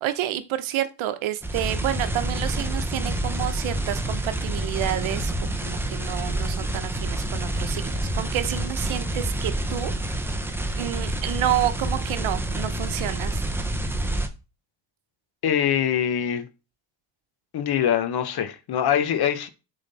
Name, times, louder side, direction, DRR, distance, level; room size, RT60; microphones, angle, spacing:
voice 1, 0.0-9.9 10.2-10.4 10.8-13.4, right 12 dB, 85° right, 0.8 m, -29 dB
sound 1, 1.4-14.3, right 1 dB, 5° right, 0.7 m, -28 dB
voice 2, 15.4-16.4 17.5-19.5, left 9 dB, 55° left, 0.9 m, -23 dB
7.1 x 3.7 x 4.0 m
cardioid pair, 115°, 46 cm